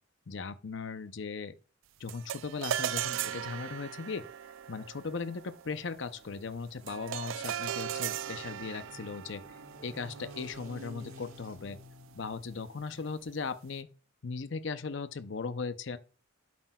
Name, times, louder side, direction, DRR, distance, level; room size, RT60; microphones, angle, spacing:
voice 1, 0.3-1.5 2.0-4.3 4.7-9.4 9.8-11.8 12.1-13.9 14.2-16.0, left 4 dB, 60° left, 0.6 m, -38 dB
sound 1, 2.1-11.6, right 10 dB, 70° right, 0.3 m, -38 dB
sound 2, 5.9-13.3, equal, 85° right, 1.6 m, -52 dB
8.6 x 7.6 x 2.3 m
head